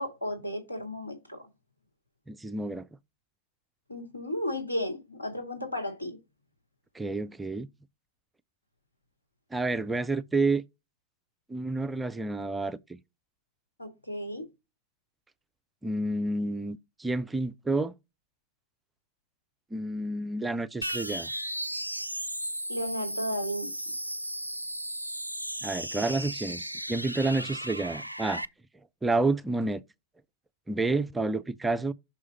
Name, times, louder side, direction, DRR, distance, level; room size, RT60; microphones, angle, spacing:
voice 1, 0.0-1.4 3.9-6.2 13.8-14.5 22.7-23.7, left 1 dB, 85° left, 2.6 m, -34 dB
voice 2, 2.3-2.9 6.9-7.7 9.5-10.6 11.5-13.0 15.8-17.9 19.7-21.3 25.6-28.4 29.0-29.8 30.7-31.9, right 2 dB, 10° right, 0.5 m, -29 dB
sound 1, 20.8-28.5, right 1 dB, 90° right, 0.4 m, -35 dB
6.1 x 4.8 x 4.0 m
figure-of-eight pair, 90°, 0 cm